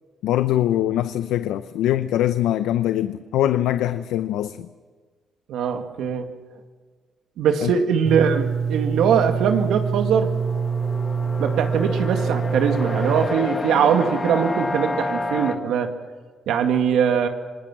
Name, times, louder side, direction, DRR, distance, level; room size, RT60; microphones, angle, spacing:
voice 1, 0.2-4.7 7.6-7.7, left 12 dB, 90° left, 11 dB, 0.6 m, -22 dB
voice 2, 5.5-6.3 7.4-10.3 11.4-15.9 16.5-17.3, right 7 dB, 80° right, 5 dB, 2.0 m, -21 dB
sound 1, 8.0-13.3, right 6 dB, 45° right, 0.9 m, -25 dB
sound 2, 9.6-15.6, left 2 dB, 25° left, 1.7 m, -29 dB
27.0 x 19.5 x 6.1 m, 1.5 s
cardioid pair, 90°, 0 cm